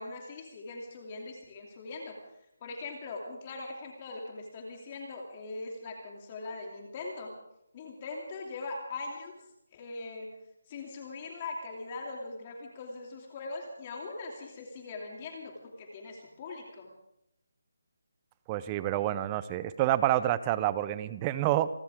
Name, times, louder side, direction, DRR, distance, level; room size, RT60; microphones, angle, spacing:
voice 1, 0.0-2.1 2.6-7.3 7.7-9.4 9.7-10.3 10.7-16.9, left 3 dB, 25° left, 0 dB, 2.8 m, -41 dB
voice 2, 18.5-21.7, right 13 dB, 20° right, 15 dB, 0.6 m, -28 dB
28.0 x 14.0 x 3.7 m, 0.81 s
figure-of-eight pair, 165°, 0 cm